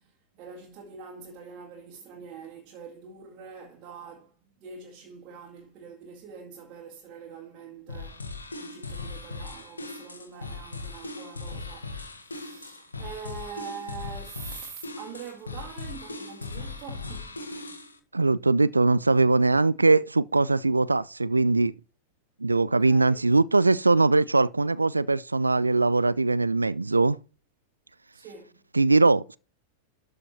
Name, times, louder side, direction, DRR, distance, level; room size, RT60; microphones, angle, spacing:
voice 1, 0.0-4.3 4.6-17.8 22.6-23.2 28.1-28.6, right 6 dB, 40° right, 2.1 m, -44 dB
sound 1, 7.9-18.0, left 3 dB, 75° left, 1.7 m, -39 dB
voice 2, 18.1-21.7 22.4-27.2 28.7-29.4, right 3 dB, 80° right, 0.3 m, -21 dB
12.5 x 4.9 x 4.3 m
figure-of-eight pair, 90°, 0 cm